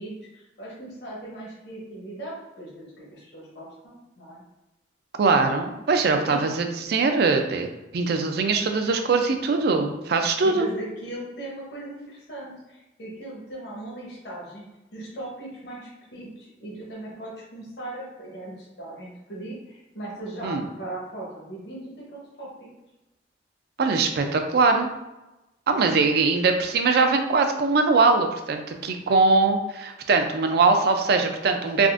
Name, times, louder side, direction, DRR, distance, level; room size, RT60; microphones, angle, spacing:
voice 1, 0.0-4.4 6.2-6.4 10.4-14.6 14.9-22.7 31.7-31.9, right 1 dB, 65° left, -5 dB, 0.8 m, -38 dB
voice 2, 5.2-7.7 7.9-10.7 20.4-20.6 23.8-24.9 25.7-31.9, right 4 dB, 60° right, 5 dB, 0.4 m, -21 dB
3.5 x 2.4 x 2.5 m, 1.0 s
head